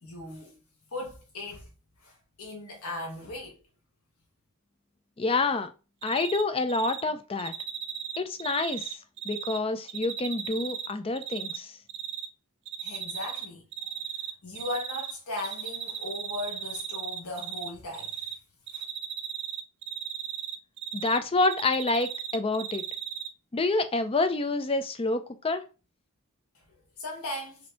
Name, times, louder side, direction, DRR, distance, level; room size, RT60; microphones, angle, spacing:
voice 1, 0.0-0.6 0.9-1.7 2.0-3.6 12.8-13.6 14.4-18.2 18.7-18.8 27.0-27.6, left 2 dB, 70° left, 1.3 m, -37 dB
voice 2, 5.2-5.7 6.0-7.5 8.2-9.0 9.2-11.8 20.9-22.8 23.5-25.6, left 3 dB, 25° left, 0.5 m, -28 dB
Cricket, 6.0-6.4 6.7-7.0 7.4-9.6 9.9-11.6 11.9-12.3 12.7-13.5 13.7-15.1 15.4-17.7 17.9-18.3 18.7-21.2 21.4-23.3, right 9 dB, 55° right, 0.5 m, -35 dB
5.0 x 2.8 x 3.4 m
head